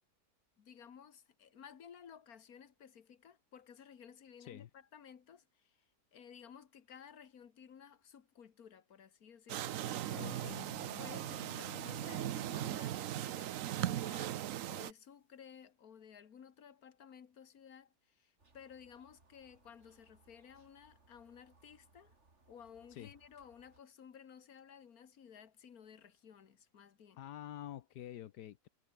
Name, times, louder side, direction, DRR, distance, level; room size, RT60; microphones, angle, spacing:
voice 1, 0.6-10.5 11.0-22.1 22.5-27.2, left 7 dB, 60° left, 1.9 m, -56 dB
sound 1, 9.5-14.9, right 12 dB, 60° right, 0.9 m, -39 dB
voice 2, 10.2-10.6 22.9-23.1 27.2-28.7, left 12 dB, 80° left, 1.4 m, -47 dB
sound 2, 10.4-12.7, left 6 dB, 40° left, 1.2 m, -53 dB
sound 3, 18.4-23.8, right 3 dB, 40° right, 3.4 m, -69 dB
omnidirectional pair, 1.8 m